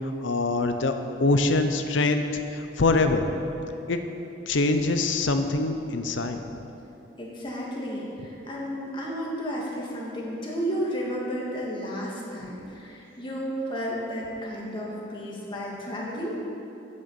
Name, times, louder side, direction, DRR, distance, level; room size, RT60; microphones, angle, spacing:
voice 1, 0.2-0.9 1.2-2.2 2.5-3.2 3.9-4.0 4.5-6.4, left 3 dB, 80° left, 7 dB, 0.7 m, -24 dB
voice 2, 7.2-16.4, equal, 25° left, -4 dB, 1.8 m, -32 dB
8.7 x 6.4 x 7.1 m, 2.9 s
head